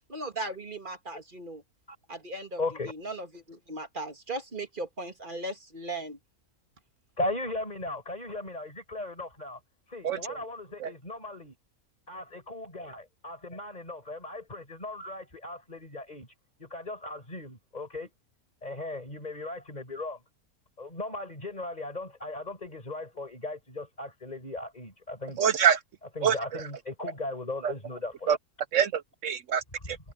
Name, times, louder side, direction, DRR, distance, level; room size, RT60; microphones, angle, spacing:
voice 1, 0.1-1.6 2.1-6.2, right 2 dB, 35° right, 2.3 m, -38 dB
voice 2, 2.6-2.9 7.2-9.6 9.9-11.6 12.1-16.3 16.6-18.1 18.6-20.2 20.8-25.4 26.2-28.4, left 2 dB, 25° left, 5.6 m, -37 dB
voice 3, 10.0-10.4 10.8-10.9 25.4-25.8 26.2-26.6 27.6-27.7 28.3-28.4 28.7-30.0, right 8 dB, 65° right, 0.9 m, -26 dB
omnidirectional pair, 1.5 m